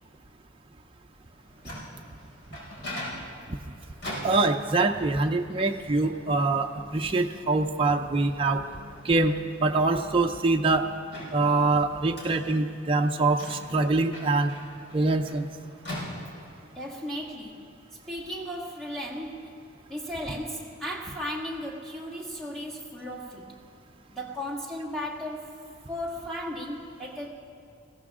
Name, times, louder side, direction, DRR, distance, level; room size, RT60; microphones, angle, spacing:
Microwave oven, 1.3-16.7, left 1 dB, 60° left, 4.8 m, -43 dB
voice 1, 4.2-8.6 9.0-9.3 9.6-10.9 11.3-14.5 14.9-15.5, right 3 dB, 25° right, 3 dB, 0.6 m, -24 dB
voice 2, 16.7-17.7 18.1-23.6 24.1-27.3, equal, 5° left, -3 dB, 2.1 m, -36 dB
21.5 x 16.0 x 3.7 m, 2.4 s
head